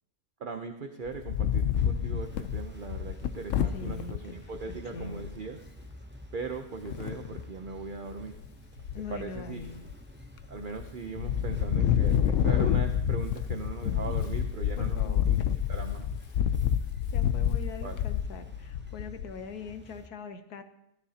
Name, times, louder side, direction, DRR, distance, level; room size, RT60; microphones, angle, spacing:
voice 1, 0.4-5.6 6.3-8.4 9.1-9.7 10.5-16.1 17.8-18.0, right 4 dB, 45° right, 5 dB, 0.7 m, -39 dB
Wind, 1.1-4.2 4.7-4.8 5.0-5.4 6.8-7.4 8.0-8.5 8.8-9.9 10.4-10.9 11.2-19.4, left 9 dB, 65° left, 0.9 m, -28 dB
sound 1, 1.7-20.1, equal, 15° right, 0.4 m, -50 dB
voice 2, 3.7-4.4 4.7-5.3 8.9-9.9 14.1-14.2 14.8-15.2 17.1-20.6, left 5 dB, 90° left, 8 dB, 1.5 m, -42 dB
15.5 x 12.5 x 2.8 m, 0.86 s
omnidirectional pair, 1.6 m